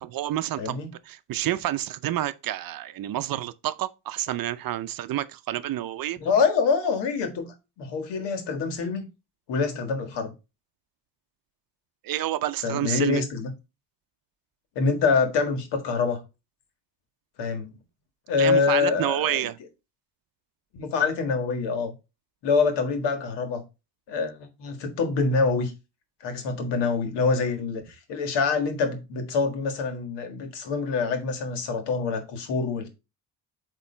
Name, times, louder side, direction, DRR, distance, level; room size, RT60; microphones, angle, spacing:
voice 1, 0.0-6.2 12.0-13.3 18.3-19.6, right 13 dB, 55° right, 0.6 m, -29 dB
voice 2, 0.6-0.9 6.2-9.1 9.5-10.3 12.6-13.5 14.7-16.2 17.4-17.7 18.3-19.4 20.7-21.9 22.4-23.6 24.1-25.7 26.2-27.8 28.1-32.9, left 4 dB, 85° left, 1.7 m, -25 dB
8.3 x 3.1 x 4.3 m
cardioid pair, 90°, 41 cm